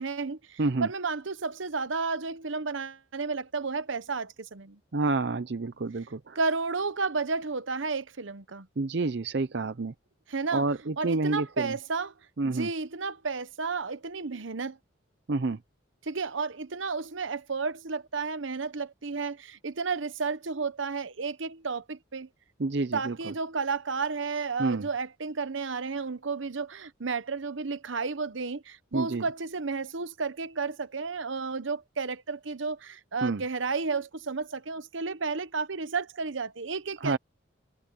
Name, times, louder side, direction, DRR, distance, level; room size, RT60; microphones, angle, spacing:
voice 1, 0.0-4.8 6.4-8.7 10.3-10.6 11.0-12.1 12.4-14.8 16.0-22.3 22.9-37.2, right 4 dB, 75° right, 0.9 m, -32 dB
voice 2, 0.6-0.9 4.9-6.4 8.8-9.9 10.5-11.7 12.4-12.7 15.3-15.6 22.6-23.3 24.6-24.9 28.9-29.3 33.2-33.4 37.0-37.2, right 3 dB, 55° right, 0.6 m, -29 dB
head